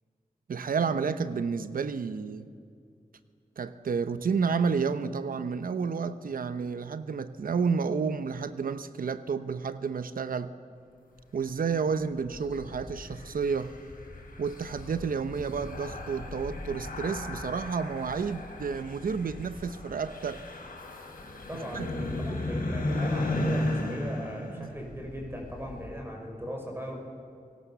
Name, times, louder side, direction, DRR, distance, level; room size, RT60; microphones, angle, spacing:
voice 1, 0.5-2.5 3.6-10.5 11.3-13.8 14.4-20.4 21.7-21.9 24.6-24.7, right 5 dB, 90° right, 0.9 m, -30 dB
sound 1, 12.0-25.9, left 1 dB, 90° left, 5.2 m, -35 dB
voice 2, 21.5-27.0, equal, 15° right, 5.5 m, -38 dB
28.5 x 18.5 x 7.0 m
cardioid pair, 55°, 14 cm